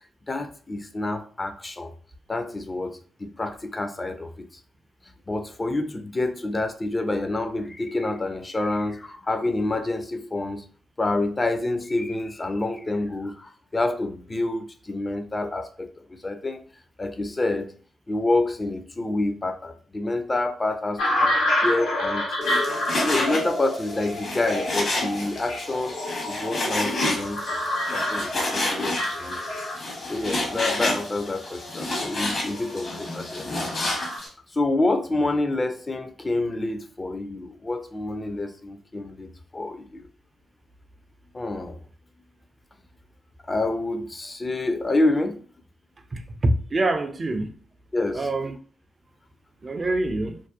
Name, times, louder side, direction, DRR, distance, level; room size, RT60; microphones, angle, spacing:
voice 1, 0.3-1.9 2.3-4.5 5.3-10.6 11.0-16.6 17.0-17.7 18.1-21.3 21.6-22.3 23.0-26.0 26.2-29.4 30.1-33.9 34.5-40.1 41.3-41.8 43.4-45.4 47.9-48.3, left 2 dB, 30° left, 0.4 m, -28 dB
sound 1, 21.0-34.2, left 1 dB, 85° left, 0.8 m, -29 dB
Frying (food), 22.4-34.3, left 1 dB, 60° left, 0.9 m, -30 dB
voice 2, 46.1-47.5 48.1-48.6 49.6-50.4, right 2 dB, 45° right, 0.3 m, -25 dB
2.6 x 2.0 x 2.3 m
hypercardioid pair, 40°, 0 cm